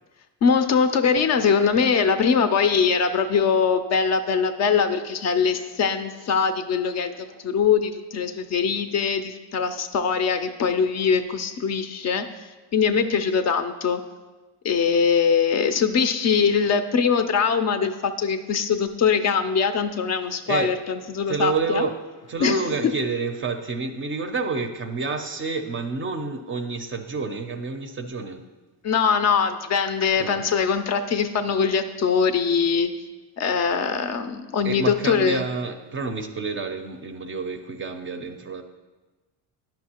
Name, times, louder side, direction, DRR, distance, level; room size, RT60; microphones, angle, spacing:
voice 1, 0.4-14.0 14.6-21.8 22.4-22.9 28.8-32.9 33.4-35.4, left 6 dB, 40° left, 9 dB, 0.4 m, -22 dB
voice 2, 20.5-20.8 21.3-21.9 22.3-28.4 30.2-30.4 34.6-38.6, right 4 dB, 30° right, 7 dB, 0.4 m, -29 dB
10.0 x 5.3 x 2.8 m, 1.2 s
cardioid pair, 120°, 42 cm